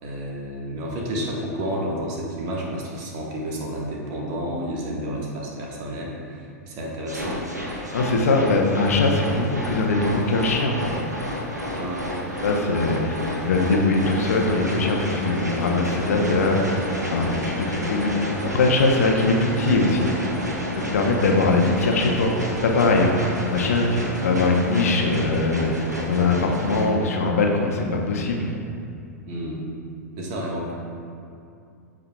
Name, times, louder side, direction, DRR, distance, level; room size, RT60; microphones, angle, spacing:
voice 1, 0.0-7.4 11.7-12.1 29.3-29.6 30.2-30.7, equal, 40° right, -2 dB, 1.4 m, -30 dB
sound 1, 7.1-26.9, equal, 85° right, 1.1 m, -30 dB
voice 2, 7.9-11.1 12.4-13.2 13.4-18.3 18.5-20.1 20.5-22.3 22.6-25.7 26.1-28.5, left 3 dB, 60° left, 1 dB, 0.9 m, -21 dB
13.5 x 5.0 x 2.3 m, 2.5 s
figure-of-eight pair, 95°, 9 cm